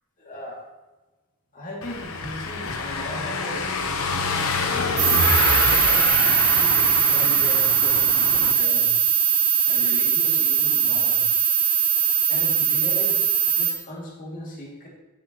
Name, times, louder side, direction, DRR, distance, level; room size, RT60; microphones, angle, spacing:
voice 1, 0.2-0.7 1.5-3.7 3.9-9.0 9.7-11.3 12.3-13.3 13.5-14.9, left 1 dB, 40° left, -3 dB, 2.3 m, -37 dB
Car passing by / Engine, 1.8-8.5, left 4 dB, 65° left, 0.9 m, -26 dB
sound 1, 5.0-13.7, right 8 dB, 75° right, 2.0 m, -20 dB
12.5 x 6.2 x 2.9 m, 1.1 s
head